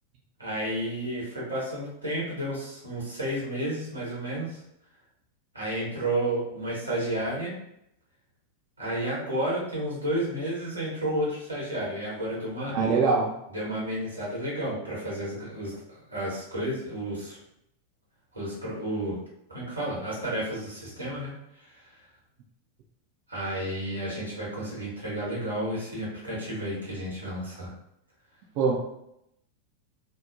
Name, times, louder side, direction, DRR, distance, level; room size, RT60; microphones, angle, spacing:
voice 1, 0.4-4.6 5.5-7.5 8.8-12.7 13.5-17.4 18.3-19.2 19.5-21.9 23.3-27.7, right 1 dB, 80° right, -5 dB, 1.0 m, -31 dB
voice 2, 12.7-13.3 28.6-28.8, right 4 dB, 45° right, -2 dB, 0.4 m, -23 dB
2.8 x 2.0 x 2.5 m, 0.79 s
figure-of-eight pair, 90°, 0 cm